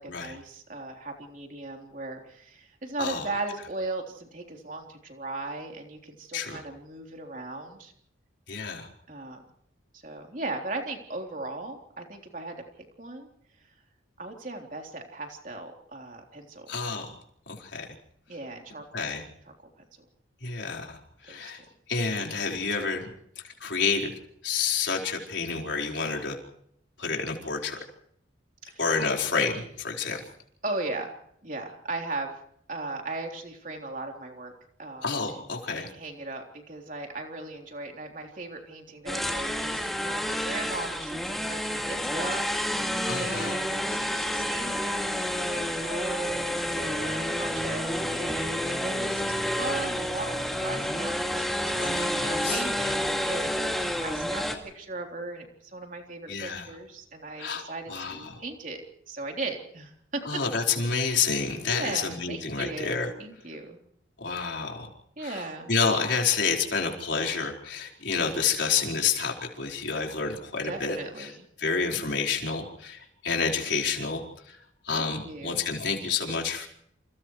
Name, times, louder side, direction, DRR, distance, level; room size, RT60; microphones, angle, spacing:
voice 1, 0.0-7.9 9.1-9.4 10.0-13.3 14.2-16.7 18.3-19.1 21.3-21.6 28.7-28.8 30.6-31.1 31.4-32.3 32.7-34.5 34.8-35.1 35.3-35.4 35.8-58.8 59.1-60.2 61.6-63.8 65.2-65.7 70.6-71.4 74.9-75.6, right 2 dB, 40° right, 2 dB, 3.5 m, -38 dB
voice 2, 8.5-8.9 16.7-17.2 17.5-17.9 18.9-19.2 20.4-21.6 21.9-23.1 23.4-24.1 24.4-26.4 27.0-27.8 28.8-30.3 35.0-35.9 43.1-43.6 51.8-52.6 56.3-56.7 57.4-58.4 60.2-63.1 64.2-64.9 65.2-71.3 71.6-74.6 74.8-76.7, left 5 dB, 65° left, 0 dB, 4.7 m, -29 dB
sound 1, 39.1-54.6, equal, ahead, 2.3 m, -29 dB
28.5 x 28.0 x 3.2 m, 0.72 s
head